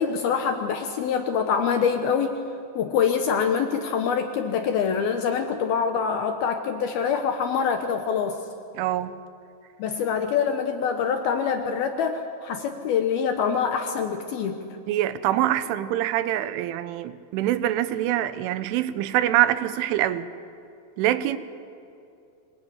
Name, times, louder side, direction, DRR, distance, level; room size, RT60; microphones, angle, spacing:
voice 1, 0.0-2.4 2.8-8.4 9.8-14.6, left 6 dB, 70° left, 6 dB, 2.4 m, -25 dB
voice 2, 8.8-9.2 14.9-20.3 21.0-21.4, right 13 dB, 85° right, 13 dB, 3.4 m, -24 dB
24.5 x 21.0 x 9.8 m, 2.5 s
omnidirectional pair, 5.5 m